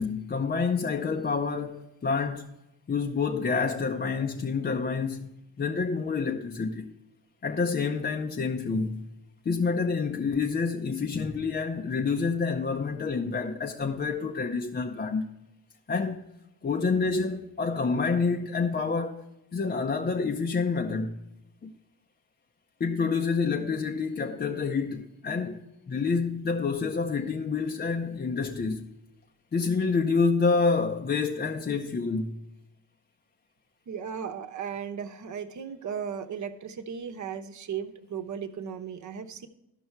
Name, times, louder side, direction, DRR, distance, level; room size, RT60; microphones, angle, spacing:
voice 1, 0.0-2.5 2.9-5.3 5.6-6.9 7.4-9.0 9.5-15.2 15.9-16.2 16.6-19.2 19.5-21.1 21.6-21.7 22.8-28.9 29.5-32.4, left 4 dB, 25° left, 0.7 m, -28 dB
voice 2, 33.9-39.5, right 7 dB, 50° right, 1.0 m, -36 dB
13.0 x 5.4 x 4.5 m
cardioid pair, 80°, 37 cm